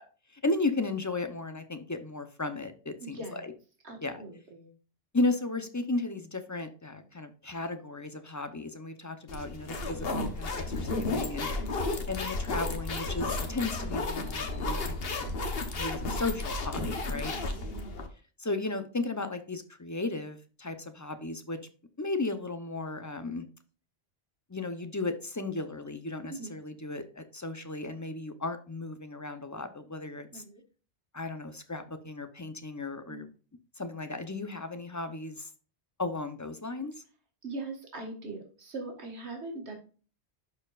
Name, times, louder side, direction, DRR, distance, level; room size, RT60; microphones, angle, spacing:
voice 1, 0.3-3.5 4.0-4.2 5.1-11.5 12.1-15.3 15.7-17.3 18.4-21.6 22.0-23.5 24.5-30.4 31.1-33.3 33.8-35.5 36.0-36.9, left 2 dB, 20° left, 0.6 m, -35 dB
voice 2, 3.0-3.5 3.8-4.7 11.4-11.8 17.1-17.7 26.3-26.5 30.3-30.6 33.1-33.2 37.4-39.7, right 2 dB, 75° right, 2.0 m, -41 dB
sound 1, 9.3-18.1, left 3 dB, 60° left, 1.3 m, -33 dB
12.0 x 4.5 x 2.4 m
omnidirectional pair, 1.1 m